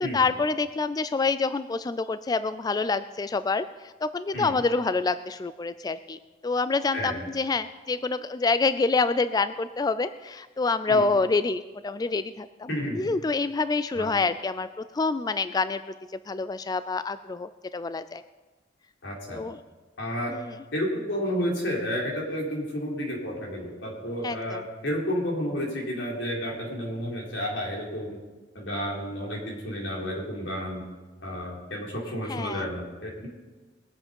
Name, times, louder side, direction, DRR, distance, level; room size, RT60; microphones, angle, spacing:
voice 1, 0.0-15.8 16.1-18.2 19.3-19.6 20.3-20.6 24.2-24.6 32.3-32.7, left 3 dB, 20° left, 13 dB, 0.3 m, -27 dB
voice 2, 12.7-13.0 13.9-14.1 19.0-19.4 20.0-20.3 20.7-28.2 28.5-30.8 31.2-33.3, equal, 90° left, -3 dB, 4.1 m, -31 dB
21.5 x 8.0 x 5.3 m, 1.3 s
head